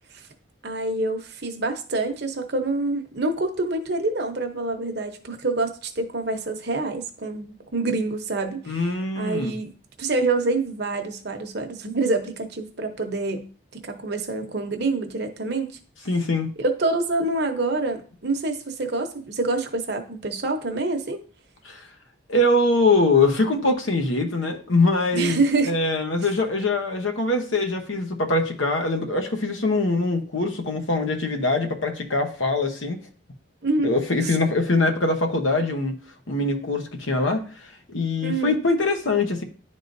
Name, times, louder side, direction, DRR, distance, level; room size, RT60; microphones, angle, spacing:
voice 1, 0.6-8.9 9.1-9.7 10.0-13.4 13.7-15.7 16.6-21.2 25.1-25.7 33.6-33.9 38.2-38.6, right 2 dB, 55° right, 5 dB, 0.8 m, -26 dB
voice 2, 8.7-9.5 16.0-16.5 21.6-21.8 22.3-25.4 25.7-33.0 33.8-35.9 36.3-39.4, left 2 dB, 80° left, 5 dB, 1.0 m, -23 dB
10.5 x 3.7 x 2.6 m, 0.40 s
head